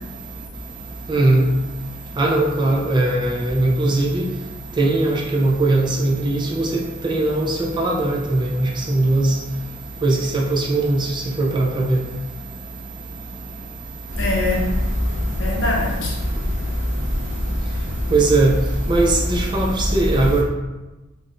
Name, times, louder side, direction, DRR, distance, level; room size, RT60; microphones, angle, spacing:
voice 1, 1.1-1.5 2.2-4.3 4.7-9.4 10.0-12.0 13.3-13.4 18.1-20.4, right 2 dB, 25° right, -2 dB, 0.4 m, -20 dB
voice 2, 14.1-18.1 18.8-20.4, left 1 dB, 65° left, -1 dB, 0.6 m, -23 dB
2.5 x 2.4 x 3.5 m, 1.1 s
head